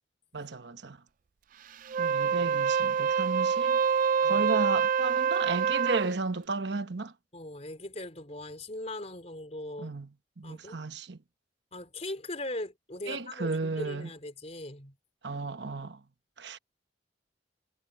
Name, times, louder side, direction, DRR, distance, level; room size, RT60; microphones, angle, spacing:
voice 1, 0.3-1.0 2.0-3.8 4.2-7.1 9.8-10.1 10.4-11.2 13.1-14.1 15.2-16.0 16.4-16.6, right 3 dB, 70° right, 1.0 m, -33 dB
Wind instrument woodwind instrument, 1.8-6.1, right 6 dB, 45° right, 0.4 m, -26 dB
voice 2, 7.3-10.0 10.4-10.8 11.7-15.0, left 1 dB, 35° left, 3.9 m, -40 dB
head